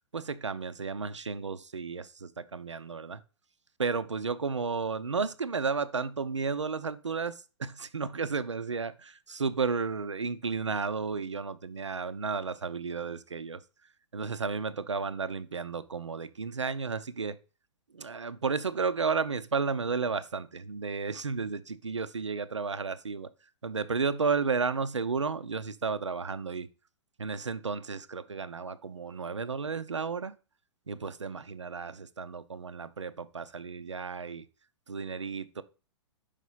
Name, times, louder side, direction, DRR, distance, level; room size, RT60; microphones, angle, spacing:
voice 1, 0.1-3.2 3.8-13.6 14.1-17.4 17.9-23.3 23.6-26.7 27.2-30.3 30.9-34.4 34.9-35.6, right 5 dB, 80° right, 0.5 m, -33 dB
5.4 x 5.0 x 5.4 m
figure-of-eight pair, 110°, 15 cm